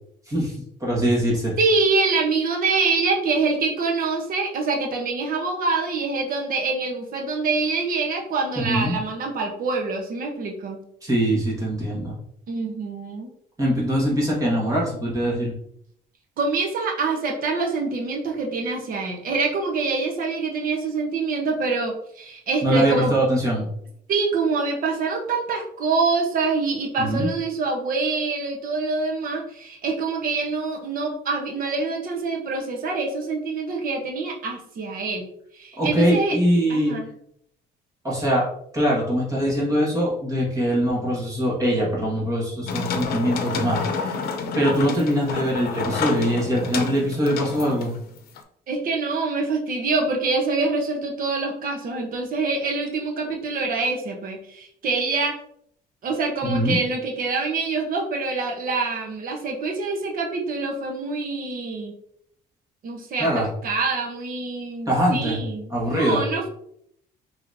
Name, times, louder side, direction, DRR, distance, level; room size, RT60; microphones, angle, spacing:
voice 1, 0.8-1.5 8.6-9.0 11.0-12.2 13.6-15.5 22.6-23.7 27.0-27.3 35.8-37.0 38.0-38.4 38.7-44.1 44.6-47.9 56.4-56.8 63.2-63.5 64.9-65.4 65.7-66.2, equal, 20° right, -5 dB, 1.7 m, -22 dB
voice 2, 1.6-10.8 12.5-13.3 16.4-23.1 24.1-35.2 35.5-36.3 36.7-37.1 48.7-55.3 56.0-61.9 62.8-66.5, right 4 dB, 60° right, 1 dB, 1.0 m, -25 dB
sound 1, 42.7-48.4, left 5 dB, 65° left, 0.7 m, -29 dB
5.6 x 3.0 x 2.7 m, 0.69 s
cardioid pair, 110°, 17 cm